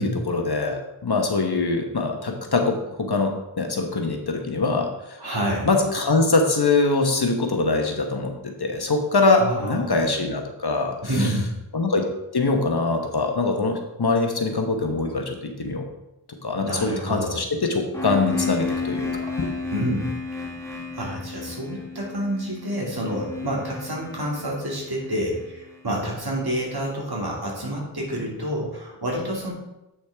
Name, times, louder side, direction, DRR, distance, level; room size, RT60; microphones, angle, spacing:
voice 1, 0.3-5.2 5.7-11.3 11.7-12.1 12.3-15.8 16.4-19.1 19.4-19.5, left 3 dB, 60° left, 3 dB, 1.1 m, -23 dB
voice 2, 5.2-5.8 9.4-10.3 11.0-11.6 16.6-17.4 19.7-20.1 20.9-29.5, right 1 dB, 55° right, -3 dB, 2.4 m, -28 dB
sound 1, 17.9-25.7, left 4 dB, 5° left, 1.5 m, -32 dB
8.2 x 6.2 x 3.5 m, 0.94 s
wide cardioid pair, 60°, 44 cm